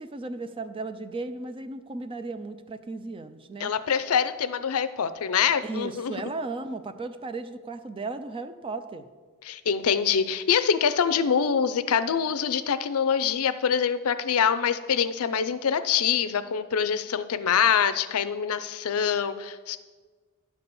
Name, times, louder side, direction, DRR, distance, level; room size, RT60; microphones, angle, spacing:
voice 1, 0.0-3.7 5.6-9.1, right 3 dB, 25° right, 10 dB, 0.4 m, -35 dB
voice 2, 3.6-6.1 9.4-19.8, left 7 dB, 75° left, 13 dB, 0.5 m, -25 dB
10.5 x 4.2 x 6.9 m, 1.5 s
head